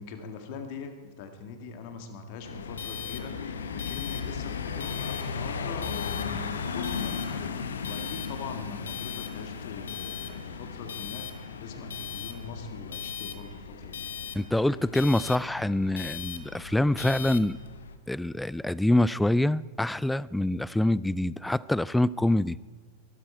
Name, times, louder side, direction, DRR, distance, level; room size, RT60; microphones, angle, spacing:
voice 1, 0.0-14.1, left 5 dB, 50° left, 7 dB, 1.9 m, -42 dB
sound 1, 2.4-18.0, left 6 dB, 70° left, 1.1 m, -36 dB
voice 2, 14.4-17.6 18.1-22.6, left 1 dB, 5° left, 21 dB, 0.3 m, -25 dB
22.5 x 13.0 x 4.4 m, 1.5 s
figure-of-eight pair, 90°, 0 cm